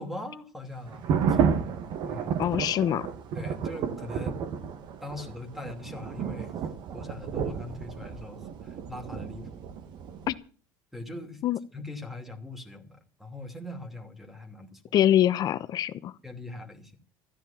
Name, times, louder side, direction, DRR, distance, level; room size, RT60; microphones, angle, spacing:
voice 1, 0.0-1.6 2.0-2.9 3.3-4.4 5.0-6.5 6.9-9.6 10.9-11.4 11.7-14.9 16.2-17.0, left 2 dB, ahead, 8 dB, 2.7 m, -41 dB
sound 1, 0.9-10.3, right 7 dB, 60° right, 1.7 m, -31 dB
voice 2, 2.4-3.0 10.3-10.4 11.4-11.6 14.9-16.1, left 11 dB, 50° left, 14 dB, 1.0 m, -24 dB
14.5 x 10.5 x 7.1 m, 0.39 s
cardioid pair, 120°, 9 cm